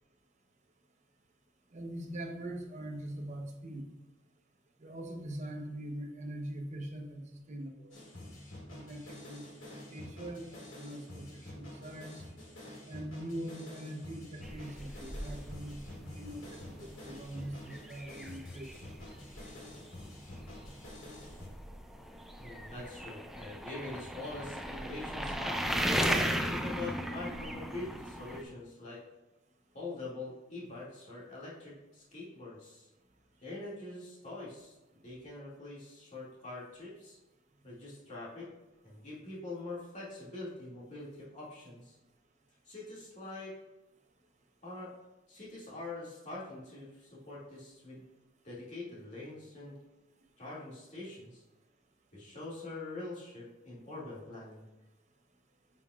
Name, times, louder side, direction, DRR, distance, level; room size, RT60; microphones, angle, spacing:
voice 1, 1.7-3.9 4.8-7.9 8.7-12.2 12.9-18.7, right 1 dB, 35° right, 2 dB, 0.9 m, -42 dB
sound 1, 7.9-21.5, left 1 dB, 85° left, 2.3 m, -48 dB
sound 2, 14.4-28.4, equal, ahead, 0.4 m, -37 dB
voice 2, 22.4-25.8 26.4-29.0 29.7-32.9 33.4-34.7 35.0-37.2 37.6-38.5 38.8-42.0 42.7-43.5 44.6-44.9 45.3-48.0 48.4-49.8 50.4-51.4 52.1-54.6, left 2 dB, 40° left, -7 dB, 2.3 m, -44 dB
9.3 x 5.6 x 2.4 m, 1.0 s
head